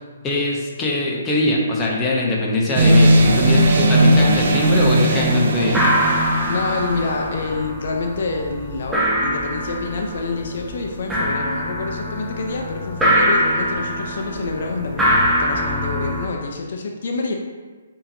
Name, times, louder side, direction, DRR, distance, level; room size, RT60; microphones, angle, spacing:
voice 1, 0.2-5.8, left 2 dB, 15° left, -3 dB, 0.7 m, -21 dB
sound 1, 2.7-7.1, right 1 dB, 60° right, 0.6 m, -17 dB
sound 2, 3.1-3.2 3.5-4.0 4.3-4.9 5.2-5.3 5.6-16.3, equal, 5° right, 1.0 m, -23 dB
voice 2, 6.5-17.3, left 3 dB, 60° left, 2 dB, 0.5 m, -27 dB
6.7 x 2.9 x 2.6 m, 1.4 s
hypercardioid pair, 150°, 0 cm